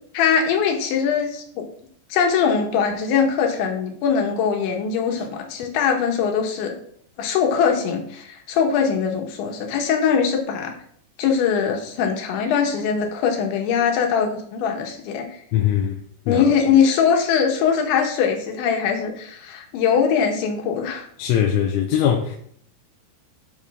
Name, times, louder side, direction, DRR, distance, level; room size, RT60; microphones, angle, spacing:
voice 1, 0.0-1.7 2.1-6.7 7.2-10.7 11.2-15.3 16.3-21.1, left 6 dB, 70° left, 3.6 m, -21 dB
voice 2, 15.5-16.0 16.3-16.4 21.2-22.4, left 9 dB, 90° left, 3.4 m, -21 dB
11.0 x 6.8 x 3.6 m
omnidirectional pair, 5.7 m